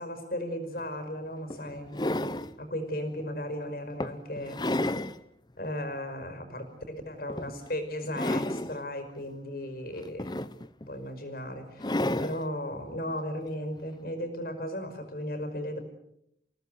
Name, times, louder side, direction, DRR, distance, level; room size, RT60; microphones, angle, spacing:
voice 1, 0.0-2.1 2.6-4.6 5.6-10.3 10.9-15.8, equal, 55° left, 8 dB, 5.4 m, -36 dB
sound 1, 0.8-0.9 1.5-2.5 3.2-3.4 4.0-5.2 5.6-5.7 7.3-7.7 8.0-8.8 10.0-10.9 11.8-12.4 13.8-13.9, left 1 dB, 25° left, 0.9 m, -31 dB
29.0 x 17.5 x 8.1 m, 0.77 s
head